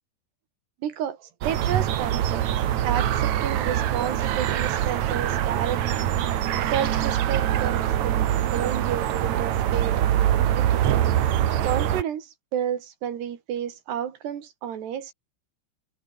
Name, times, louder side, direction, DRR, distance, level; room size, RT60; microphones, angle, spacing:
voice 1, 0.8-2.5 2.8-6.0 6.7-10.8 11.6-15.1, right 9 dB, 65° right, 4.2 m, -31 dB
sound 1, 1.4-12.0, right 11 dB, 85° right, 1.6 m, -24 dB
omnidirectional pair, 5.5 m